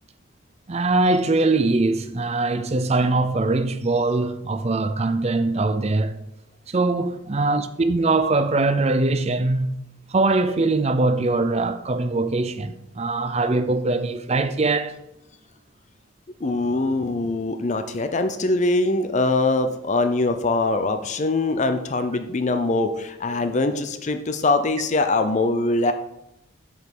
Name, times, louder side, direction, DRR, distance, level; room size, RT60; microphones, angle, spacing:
voice 1, 0.7-6.1 6.7-9.8 10.1-14.9, right 2 dB, 30° right, 0.5 m, -22 dB
voice 2, 16.4-25.9, left 2 dB, 35° left, 0.5 m, -22 dB
7.8 x 5.3 x 6.1 m
head